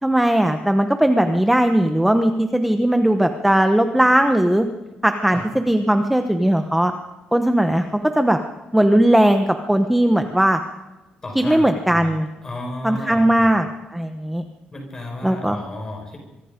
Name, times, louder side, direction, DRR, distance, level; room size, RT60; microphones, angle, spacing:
voice 1, 0.0-4.7 5.0-6.9 7.3-8.4 8.7-10.6 11.3-12.3 12.8-14.4 15.2-15.6, right 1 dB, 5° right, 6 dB, 1.0 m, -18 dB
voice 2, 11.2-12.2 12.4-13.5 14.7-16.2, left 1 dB, 20° left, 3 dB, 5.6 m, -33 dB
25.5 x 23.5 x 5.2 m, 1.1 s
cardioid pair, 180°, 3 cm